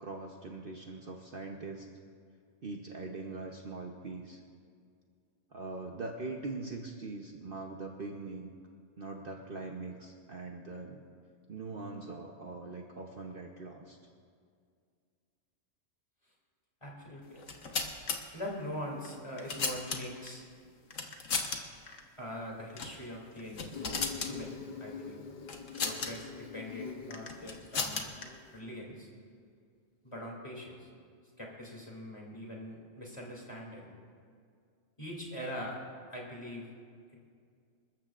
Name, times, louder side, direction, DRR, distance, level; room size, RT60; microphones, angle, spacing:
voice 1, 0.0-1.9 2.6-4.4 5.5-8.5 9.0-11.0 11.5-14.0, right 3 dB, 50° right, 2 dB, 1.0 m, -42 dB
voice 2, 16.8-17.4 18.3-20.4 22.2-25.2 25.8-28.1 28.5-29.1 30.0-30.9 31.4-33.9 35.0-35.8 36.1-36.7, equal, 25° left, -3 dB, 2.8 m, -42 dB
sound 1, 17.4-18.2 19.0-20.3 20.9-21.6 21.9-22.0 22.7-23.0 23.3-24.3 25.5-26.1 27.1-28.2, left 5 dB, 75° left, 1.5 m, -35 dB
Insect, 23.7-28.7, left 6 dB, 40° left, 0.9 m, -45 dB
27.0 x 13.5 x 2.5 m, 2.2 s
omnidirectional pair, 1.3 m